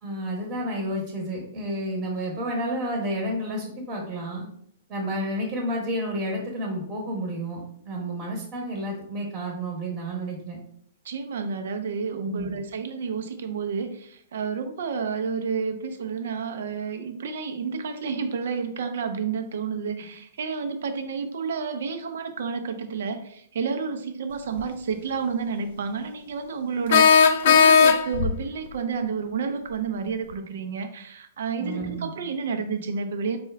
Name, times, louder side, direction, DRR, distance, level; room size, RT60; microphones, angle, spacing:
voice 1, 0.0-4.4 4.9-10.6 12.3-12.5 31.6-32.1, right 1 dB, 25° right, -1 dB, 1.1 m, -30 dB
voice 2, 11.0-33.4, right 5 dB, 75° right, 7 dB, 0.6 m, -30 dB
sound 1, 24.6-24.7 26.9-28.3, left 6 dB, 60° left, 0.3 m, -16 dB
4.3 x 2.2 x 3.4 m, 0.68 s
hypercardioid pair, 145°, 0 cm